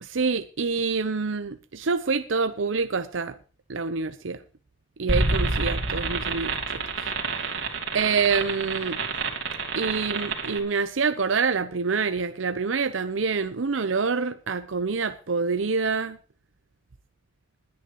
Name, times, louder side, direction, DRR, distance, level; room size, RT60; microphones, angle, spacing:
voice 1, 0.0-3.4 3.7-4.4 5.0-6.8 7.9-9.0 9.8-16.2, right 5 dB, 90° right, 0.7 m, -26 dB
sound 1, 5.1-10.6, right 3 dB, 70° right, 2.9 m, -28 dB
20.5 x 9.8 x 3.1 m
head